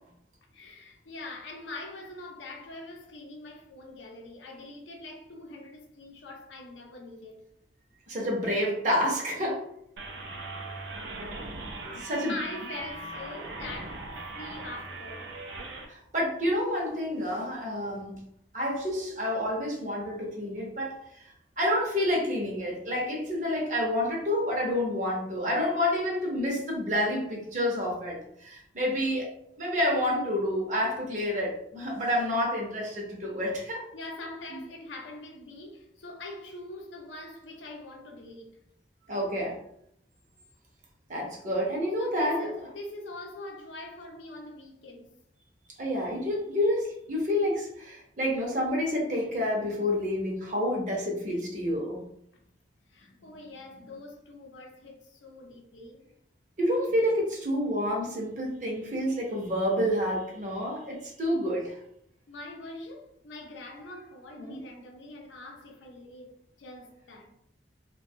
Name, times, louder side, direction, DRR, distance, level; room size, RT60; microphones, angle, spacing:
voice 1, 0.5-7.4 11.7-15.3 33.9-38.5 42.0-45.1 52.9-56.1 56.9-57.0 62.3-67.3, left 2 dB, 80° left, 0.6 m, -43 dB
voice 2, 8.1-9.7 11.9-12.4 15.9-18.2 18.5-29.3 29.6-33.8 34.5-34.6 39.1-39.6 41.1-42.4 45.8-52.1 56.6-61.8 64.4-64.6, left 1 dB, 40° right, 0.7 m, -29 dB
sound 1, 10.0-15.9, right 2 dB, 80° right, 0.4 m, -39 dB
2.5 x 2.2 x 2.7 m
head